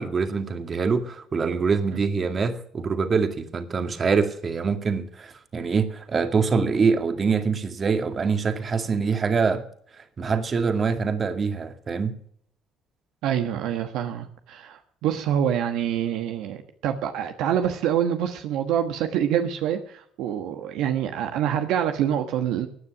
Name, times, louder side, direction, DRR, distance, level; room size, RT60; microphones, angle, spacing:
voice 1, 0.0-9.6 10.2-12.2, right 5 dB, 40° right, 8 dB, 2.1 m, -24 dB
voice 2, 13.2-22.7, right 9 dB, 70° right, 6 dB, 1.2 m, -26 dB
15.0 x 9.7 x 6.0 m, 0.63 s
hypercardioid pair, 60°, 0 cm